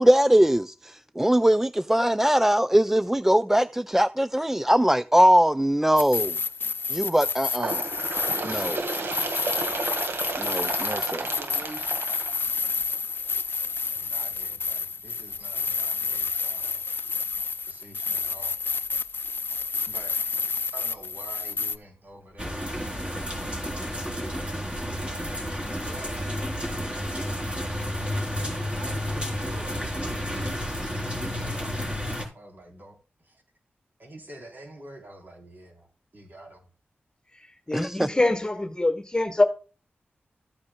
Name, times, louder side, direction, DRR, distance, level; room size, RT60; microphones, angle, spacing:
voice 1, 0.0-6.4 6.9-7.8 8.4-8.9 10.4-11.2 37.7-38.1, equal, 10° right, 0.3 m, -21 dB
sound 1, 6.0-21.8, left 5 dB, 60° left, 0.5 m, -30 dB
Bird, 7.5-13.0 13.9-14.0 14.4-14.5 15.3-15.4 16.3-16.4 17.3-17.4, right 3 dB, 75° right, 1.6 m, -32 dB
voice 2, 11.1-12.0 14.0-16.8 17.7-18.5 19.9-23.5 25.8-26.4 28.3-33.0 33.2-33.4 34.0-36.7, right 1 dB, 50° right, 3.5 m, -47 dB
sound 2, 22.4-32.3, equal, 25° right, 3.7 m, -31 dB
voice 3, 37.7-39.4, left 2 dB, 20° left, 1.3 m, -24 dB
14.0 x 8.7 x 2.2 m
wide cardioid pair, 70°, 4 cm